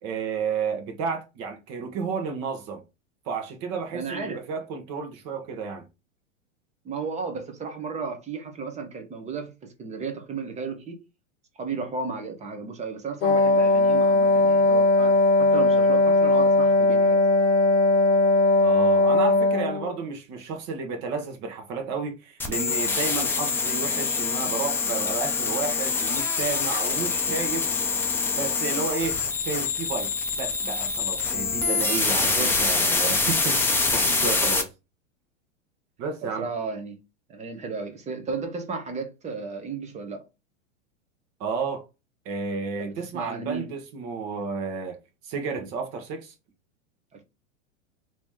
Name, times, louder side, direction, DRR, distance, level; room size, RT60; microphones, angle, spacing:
voice 1, 0.0-2.8 3.2-5.9 18.6-27.7 28.3-34.7 36.0-36.5 41.4-41.8 42.2-45.0 45.2-46.3, right 5 dB, 40° right, 1.1 m, -32 dB
voice 2, 3.9-4.4 6.8-11.0 11.6-17.2 32.2-32.5 36.2-37.0 37.3-40.2 42.8-43.7 47.1-47.2, right 4 dB, 20° right, 0.9 m, -34 dB
Wind instrument woodwind instrument, 13.2-20.0, left 2 dB, 70° left, 0.8 m, -19 dB
sound 1, 22.4-34.6, left 4 dB, 5° left, 0.5 m, -25 dB
3.0 x 3.0 x 3.6 m
hypercardioid pair, 115°, 38 cm